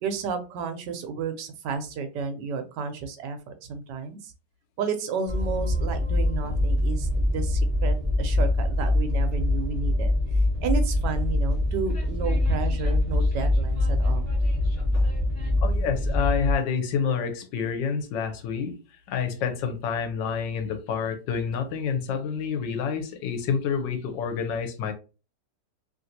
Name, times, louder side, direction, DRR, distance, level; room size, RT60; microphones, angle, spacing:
voice 1, 0.0-4.3 4.8-10.1 10.6-14.3, right 5 dB, 75° right, 1.2 m, -32 dB
Train, 5.3-16.5, left 1 dB, 10° left, 0.9 m, -24 dB
voice 2, 15.6-18.7 19.1-24.9, left 6 dB, 90° left, 1.3 m, -28 dB
3.1 x 2.5 x 2.7 m
omnidirectional pair, 1.9 m